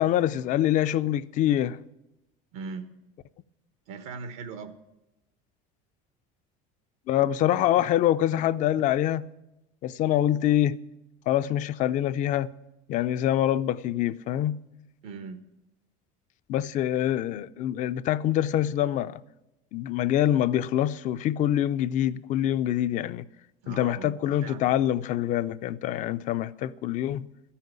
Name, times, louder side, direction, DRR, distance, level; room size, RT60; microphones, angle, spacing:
voice 1, 0.0-1.8 7.1-9.3 9.8-10.8 11.3-12.5 12.9-14.6 16.5-19.2 19.7-23.2 23.7-27.3, left 12 dB, 45° left, 0.4 m, -25 dB
voice 2, 2.5-2.9 3.9-4.7 15.0-15.4 23.6-24.7, right 5 dB, 85° right, 1.1 m, -39 dB
13.0 x 5.7 x 9.3 m
cardioid pair, 135°, 18 cm